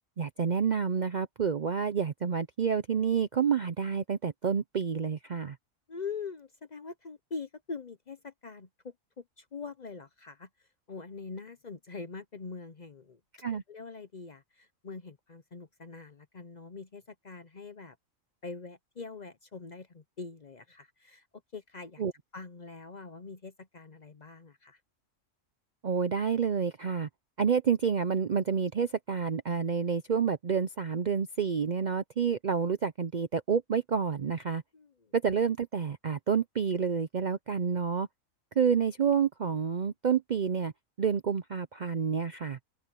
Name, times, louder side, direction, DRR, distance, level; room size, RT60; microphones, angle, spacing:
voice 1, 0.2-5.6 13.4-13.6 22.0-22.1 25.8-27.1 27.4-34.6 35.1-38.1 38.6-40.7 41.0-42.6, right 6 dB, 50° right, 0.5 m, -29 dB
voice 2, 5.9-10.5 10.9-13.2 13.7-18.0 18.4-21.3 21.5-22.0 22.3-24.8 34.7-35.1, left 4 dB, 40° left, 0.7 m, -43 dB
open air
omnidirectional pair, 1.4 m